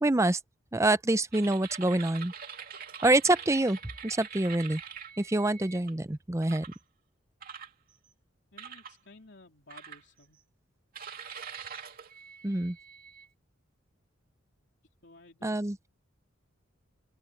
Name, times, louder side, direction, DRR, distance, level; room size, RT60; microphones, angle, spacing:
voice 1, 0.0-0.4 0.7-2.3 3.0-3.8 4.0-4.8 5.2-6.6 12.4-12.8 15.4-15.8, right 2 dB, 15° right, 0.6 m, -26 dB
sound 1, 1.3-5.9 6.4-6.8 7.4-8.1 8.6-9.0 9.7-10.4 10.9-13.3, right 7 dB, 45° right, 2.8 m, -44 dB
voice 2, 8.5-10.4 15.0-15.6, left 2 dB, 60° left, 3.7 m, -55 dB
open air
head